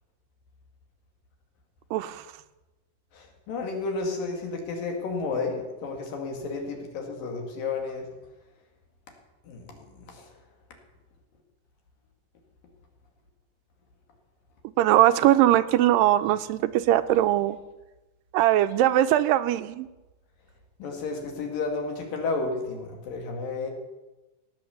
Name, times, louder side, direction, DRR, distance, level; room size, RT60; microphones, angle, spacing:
voice 1, 1.9-2.2 14.8-17.6 18.3-19.9, right 13 dB, 90° right, 12 dB, 2.3 m, -21 dB
voice 2, 3.1-8.0 9.5-9.8 20.8-23.7, left 3 dB, 80° left, 2 dB, 3.8 m, -32 dB
17.5 x 8.0 x 7.1 m, 1.1 s
omnidirectional pair, 3.9 m